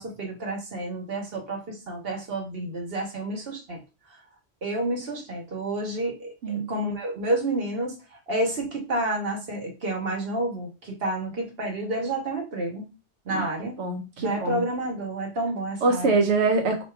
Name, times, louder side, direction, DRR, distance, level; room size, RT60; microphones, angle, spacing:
voice 1, 0.0-3.8 4.6-12.9 13.2-13.8 14.2-16.2, right 1 dB, 60° right, 0 dB, 1.5 m, -30 dB
voice 2, 13.8-14.6 15.8-16.8, right 3 dB, 90° right, 3 dB, 1.0 m, -24 dB
5.1 x 3.0 x 3.3 m, 0.30 s
omnidirectional pair, 1.1 m